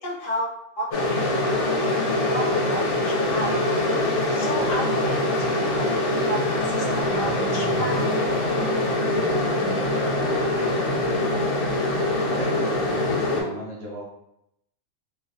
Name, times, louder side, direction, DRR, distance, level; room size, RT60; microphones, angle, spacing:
voice 1, 0.0-1.7 2.1-3.6 4.3-5.2 5.5-8.0, equal, 90° left, -5 dB, 1.3 m, -33 dB
sound 1, 0.9-13.4, left 2 dB, 70° left, 0.9 m, -24 dB
sound 2, 2.1-10.1, right 4 dB, 85° right, 1.0 m, -36 dB
voice 2, 10.1-11.5 12.3-14.0, right 1 dB, 60° right, -4 dB, 0.8 m, -37 dB
3.2 x 2.2 x 2.5 m, 0.81 s
omnidirectional pair, 1.3 m